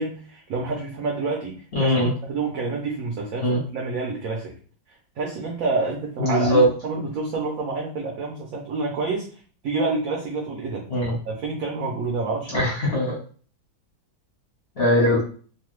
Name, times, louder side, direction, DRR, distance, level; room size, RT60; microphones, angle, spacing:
voice 1, 0.0-4.5 4.9-10.8 11.2-12.7, right 3 dB, 70° right, -1 dB, 0.8 m, -28 dB
voice 2, 1.7-2.1 3.4-3.6 6.2-6.6 10.9-11.1 12.5-13.2 14.8-15.2, left 1 dB, 45° left, -4 dB, 0.8 m, -20 dB
3.0 x 2.2 x 3.1 m, 0.42 s
omnidirectional pair, 2.1 m